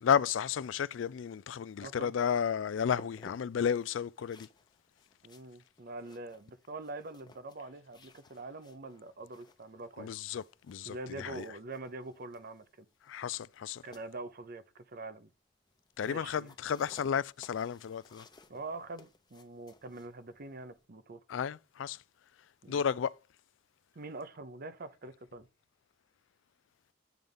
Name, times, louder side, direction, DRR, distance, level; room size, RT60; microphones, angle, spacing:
voice 1, 0.0-4.5 10.0-11.5 13.1-13.8 16.0-18.3 21.3-22.0 22.7-23.2, left 7 dB, 80° left, 0.4 m, -32 dB
voice 2, 1.8-2.1 5.2-10.1 10.8-12.8 13.8-15.3 16.0-16.5 18.5-21.2 22.6-22.8 23.9-25.5, right 2 dB, 55° right, 0.7 m, -44 dB
sound 1, 2.0-20.9, left 2 dB, 25° left, 0.8 m, -60 dB
9.3 x 3.4 x 5.4 m
head